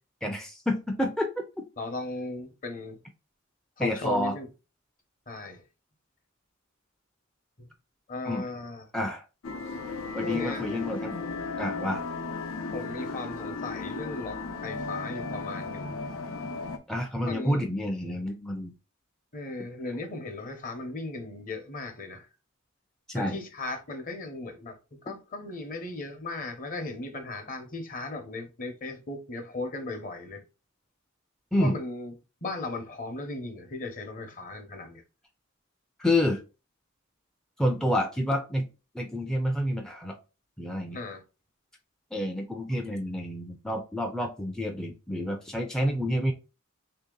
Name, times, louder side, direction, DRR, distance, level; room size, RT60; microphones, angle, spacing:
voice 1, 0.2-1.6 3.8-4.4 8.2-8.5 8.9-9.2 10.1-11.2 11.6-12.0 16.9-18.7 23.1-23.4 25.1-25.2 31.5-31.8 36.0-36.4 37.6-38.7 38.9-40.2 40.6-41.0 42.1-46.3, left 1 dB, 5° left, 0.4 m, -29 dB
voice 2, 1.8-3.0 3.8-4.5 5.3-5.6 8.1-8.8 10.2-10.6 12.7-16.0 17.2-17.6 19.3-22.3 23.2-24.8 25.0-30.4 31.5-32.1 32.4-35.0 40.9-41.2, left 2 dB, 40° left, 0.8 m, -37 dB
sound 1, 9.4-16.8, left 3 dB, 80° left, 0.7 m, -35 dB
3.2 x 2.7 x 3.7 m
head